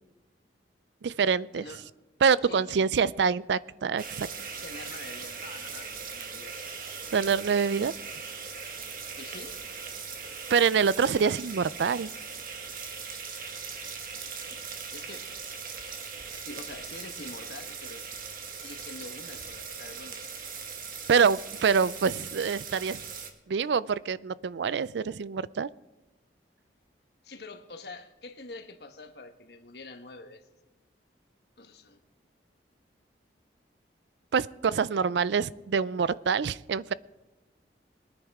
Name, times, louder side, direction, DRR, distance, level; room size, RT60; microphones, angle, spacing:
voice 1, 1.0-1.6 2.2-4.3 7.1-7.9 10.5-12.1 21.1-23.0 23.5-25.7 34.3-36.9, right 6 dB, 80° right, 0.4 m, -25 dB
voice 2, 1.5-1.9 2.4-2.9 4.6-6.6 9.2-9.6 14.5-15.3 16.5-18.1 18.6-20.4 27.2-30.4 31.6-32.0, left 2 dB, 65° left, 1.2 m, -45 dB
sound 1, 4.0-23.3, right 5 dB, 50° right, 1.5 m, -40 dB
22.0 x 10.0 x 3.6 m
head